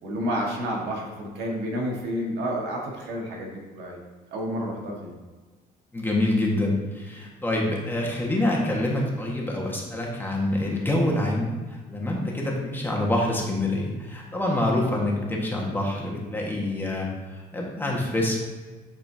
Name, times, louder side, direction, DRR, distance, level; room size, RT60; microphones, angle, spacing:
voice 1, 0.0-4.0 4.3-5.1, equal, 80° right, -1 dB, 1.7 m, -30 dB
voice 2, 5.9-11.5 11.9-17.1 17.3-18.4, left 1 dB, 10° left, -3 dB, 1.6 m, -26 dB
11.0 x 4.3 x 2.8 m, 1.3 s
cardioid pair, 110°, 17 cm